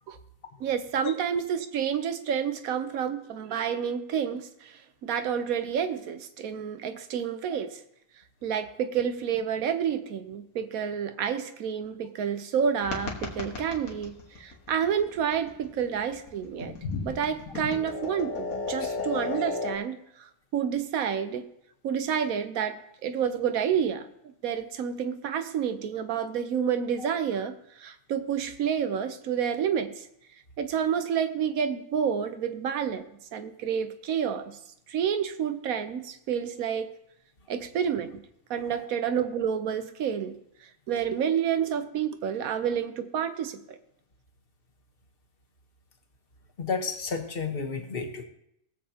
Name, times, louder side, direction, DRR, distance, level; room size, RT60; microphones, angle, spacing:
voice 1, 0.6-7.8 8.4-16.8 17.0-21.5 21.8-30.1 30.6-34.6 34.9-36.9 37.5-38.2 38.5-40.4 40.9-43.8, right 8 dB, 90° right, 10 dB, 1.2 m, -29 dB
sound 1, 12.8-19.8, left 4 dB, 90° left, 1.9 m, -36 dB
voice 2, 46.6-48.2, left 5 dB, 45° left, 5 dB, 1.2 m, -32 dB
20.5 x 7.5 x 2.8 m, 0.78 s
omnidirectional pair, 1.4 m